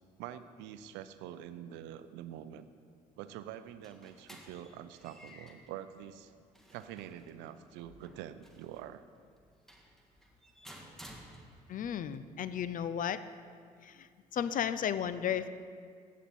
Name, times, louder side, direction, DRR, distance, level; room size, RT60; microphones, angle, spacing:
voice 1, 0.2-2.7 3.2-6.3 6.7-9.0, right 11 dB, 65° right, 12 dB, 0.6 m, -46 dB
sound 1, 3.6-11.9, equal, ahead, 1.7 m, -56 dB
voice 2, 11.7-13.2 13.8-15.5, left 9 dB, 45° left, 14 dB, 0.6 m, -34 dB
15.0 x 8.3 x 4.2 m, 2.1 s
hypercardioid pair, 50°, 19 cm